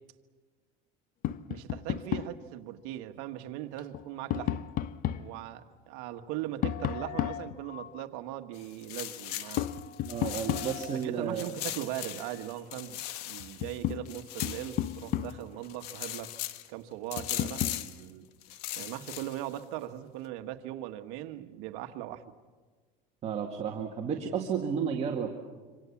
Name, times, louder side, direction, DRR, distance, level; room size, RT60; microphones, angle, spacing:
Tap, 1.2-2.4 3.8-5.3 6.6-8.1 9.6-11.1 12.9-13.0 13.4-15.6 17.2-17.8, left 11 dB, 45° left, 0.8 m, -33 dB
voice 1, 1.5-4.7 5.1-9.7 10.9-13.0 13.2-16.3 16.7-18.2 18.8-22.2, right 13 dB, 75° right, 8 dB, 1.5 m, -39 dB
sound 1, 8.5-11.0 11.4-15.3 15.6-16.7 17.1-18.0 18.4-19.6, left 14 dB, 90° left, 1.3 m, -39 dB
voice 2, 10.0-11.5 23.2-25.3, right 7 dB, 35° right, 1 dB, 2.0 m, -32 dB
26.0 x 26.0 x 7.2 m, 1.4 s
cardioid pair, 145°, 19 cm